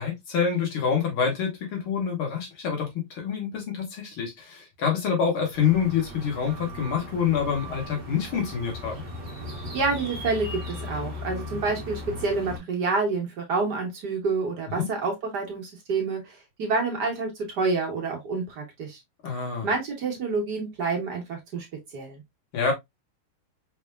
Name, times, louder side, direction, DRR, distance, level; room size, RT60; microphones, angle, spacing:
voice 1, 0.0-9.0 14.7-14.9 19.2-19.7 22.5-22.7, left 7 dB, 75° left, 2.4 m, -27 dB
sound 1, 5.5-12.6, left 1 dB, 25° right, 1.3 m, -37 dB
voice 2, 9.7-19.0 19.6-21.7 21.9-22.2, right 4 dB, 55° right, 1.6 m, -28 dB
5.2 x 3.4 x 2.3 m
omnidirectional pair, 2.3 m